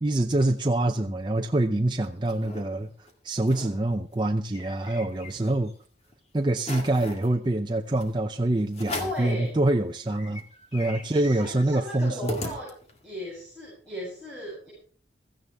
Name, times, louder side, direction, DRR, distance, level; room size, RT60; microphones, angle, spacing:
voice 1, 0.0-5.7 6.3-10.4 10.7-12.4, right 1 dB, 25° right, 5 dB, 0.6 m, -25 dB
sound 1, 1.8-2.6 3.1-3.2 3.4-3.7 4.1-5.7 6.1-6.2 6.6-7.3 8.0-8.1 8.7-9.3 9.8-9.9 10.1-13.1, left 2 dB, 35° left, 2.1 m, -38 dB
voice 2, 9.0-9.5 11.0-12.7 13.0-14.7, equal, 5° left, -9 dB, 7.3 m, -36 dB
16.5 x 14.5 x 3.6 m, 0.42 s
head